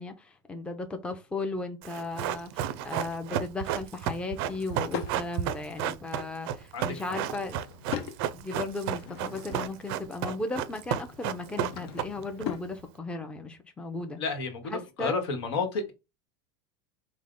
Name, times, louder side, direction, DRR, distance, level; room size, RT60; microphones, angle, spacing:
voice 1, 0.0-7.6 8.3-14.2 14.7-15.2, left 3 dB, 10° left, 0.4 m, -36 dB
Run, 1.8-12.4 12.7-12.8, right 10 dB, 65° right, 0.4 m, -32 dB
Drawer open or close / Wood, 4.2-5.2 6.9-8.2 8.7-9.9 11.2-12.7, left 8 dB, 70° left, 0.6 m, -40 dB
voice 2, 6.7-7.2 14.2-15.9, left 4 dB, 90° left, 1.1 m, -31 dB
3.5 x 2.1 x 3.5 m
supercardioid pair, 125°, 13 cm